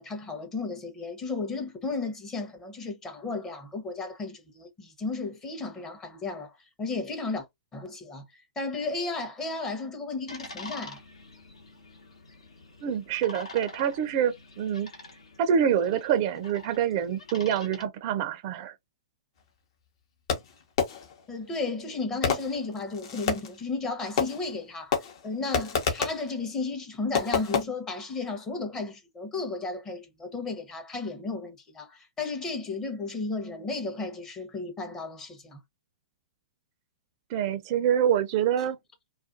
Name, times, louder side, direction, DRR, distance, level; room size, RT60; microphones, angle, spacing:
voice 1, 0.0-7.5 7.7-11.0 21.3-35.6, left 3 dB, 15° left, 0.7 m, -34 dB
sound 1, 10.3-17.8, left 2 dB, 80° left, 1.0 m, -46 dB
voice 2, 12.8-14.9 15.4-18.8 37.3-38.8, right 9 dB, 40° right, 0.4 m, -26 dB
Fireworks, 20.3-21.2 22.2-23.6 24.2-24.6 24.9-26.3 27.1-27.6, left 6 dB, 50° left, 0.8 m, -29 dB
2.4 x 2.2 x 2.4 m
hypercardioid pair, 125°, 3 cm